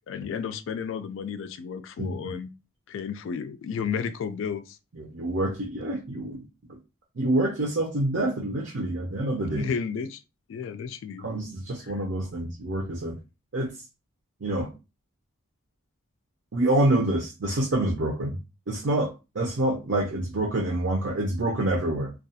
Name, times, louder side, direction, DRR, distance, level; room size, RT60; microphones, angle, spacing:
voice 1, 0.1-2.5 2.9-4.8 9.4-10.2 10.5-11.3, left 6 dB, 65° left, 0.3 m, -32 dB
voice 2, 2.0-2.3 5.0-6.4 7.2-9.7 11.2-13.2 13.5-13.7 14.4-14.7 16.5-18.4 18.7-22.1, right 1 dB, 60° right, 0.6 m, -27 dB
2.3 x 2.3 x 2.6 m
head